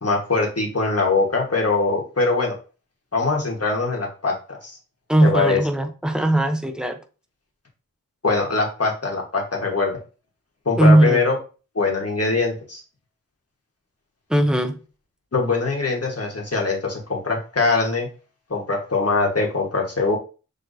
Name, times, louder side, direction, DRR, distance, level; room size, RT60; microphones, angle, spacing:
voice 1, 0.0-2.6 3.1-4.8 5.2-5.6 8.2-10.0 10.6-11.4 11.7-12.8 15.3-18.1 18.5-20.2, left 3 dB, 45° left, 1.4 m, -22 dB
voice 2, 5.1-7.0 10.8-11.2 14.3-14.8, right 1 dB, ahead, 0.7 m, -18 dB
6.4 x 3.1 x 2.7 m
wide cardioid pair, 45°, 34 cm